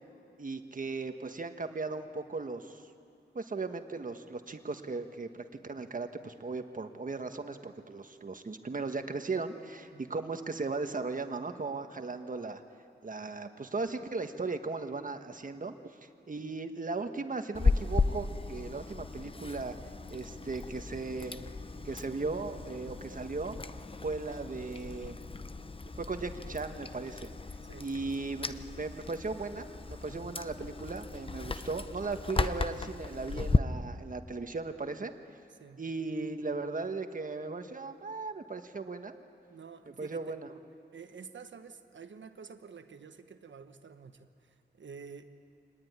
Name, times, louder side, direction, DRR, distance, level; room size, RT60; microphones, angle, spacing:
voice 1, 0.4-2.8 3.3-12.6 13.0-19.8 20.1-21.4 21.8-23.6 24.0-25.2 26.0-27.3 27.8-29.7 30.0-35.1 35.8-39.1 40.0-40.5, right 3 dB, 45° right, 7 dB, 1.5 m, -37 dB
Chewing mastication, 17.5-33.6, left 3 dB, 30° left, 0.7 m, -35 dB
voice 2, 22.8-23.2 27.7-27.9 30.1-30.4 35.6-35.8 39.5-40.4 40.9-45.3, right 6 dB, 85° right, 8 dB, 1.2 m, -50 dB
25.0 x 19.5 x 9.6 m, 2.5 s
wide cardioid pair, 90°, 19 cm